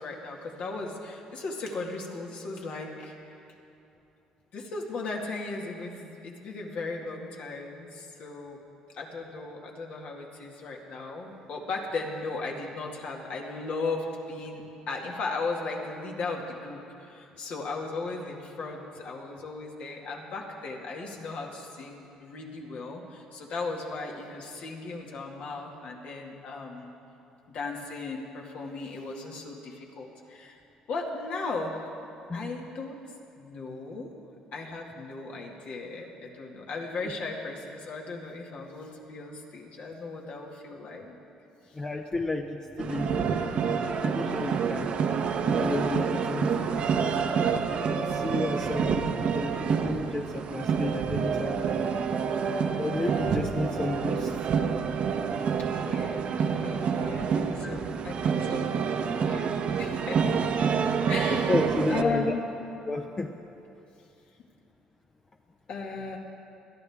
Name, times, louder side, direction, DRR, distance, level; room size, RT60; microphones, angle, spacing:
voice 1, 0.0-3.3 4.5-8.6 8.9-26.9 27.5-30.6 30.9-31.9 32.3-33.0 33.4-34.1 34.5-41.2 55.6-58.8 59.1-60.4 61.1-61.5 61.9-62.4 65.7-66.2, left 3 dB, 60° left, 0 dB, 2.1 m, -36 dB
voice 2, 32.3-32.7 37.0-37.1 41.7-44.9 45.4-46.9 47.3-51.8 52.8-54.3 57.6-57.8 61.3-62.3 62.9-63.3, left 2 dB, 30° left, 3 dB, 0.8 m, -32 dB
sound 1, 42.8-62.0, right 6 dB, 55° right, 0.9 m, -28 dB
21.0 x 13.0 x 3.6 m, 2.7 s
supercardioid pair, 80°, 2 cm